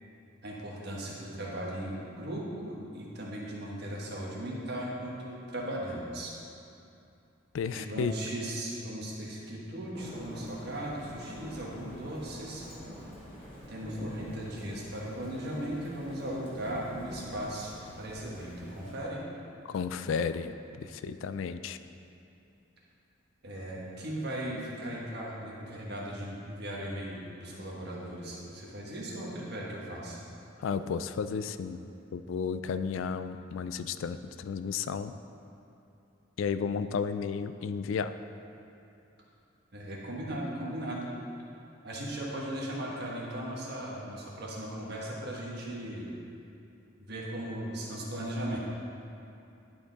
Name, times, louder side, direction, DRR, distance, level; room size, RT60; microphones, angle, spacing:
voice 1, 0.4-6.3 7.6-12.7 13.7-19.2 23.4-30.2 39.7-41.1 41.8-46.1 47.0-48.6, right 1 dB, 55° right, -4 dB, 1.4 m, -37 dB
voice 2, 7.5-8.1 19.7-21.8 30.6-31.8 32.1-35.1 36.4-38.2, left 6 dB, 70° left, 11 dB, 0.3 m, -33 dB
Thunder / Rain, 9.9-19.0, equal, 25° left, 1.6 m, -45 dB
11.5 x 4.3 x 4.0 m, 2.7 s
head